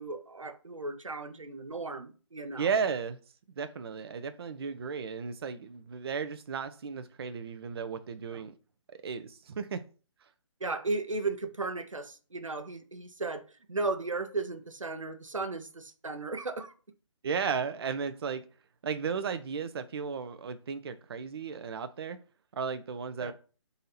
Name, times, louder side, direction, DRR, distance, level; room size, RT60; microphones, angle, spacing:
voice 1, 0.0-2.7 8.3-8.4 10.6-16.7 23.2-23.3, right 3 dB, 90° right, 0.7 m, -35 dB
voice 2, 2.6-3.2 3.6-8.5 8.9-9.8 17.2-18.4 18.8-22.2 22.5-23.3, right 6 dB, 50° right, 0.5 m, -34 dB
4.0 x 2.8 x 4.0 m
figure-of-eight pair, 140°, 16 cm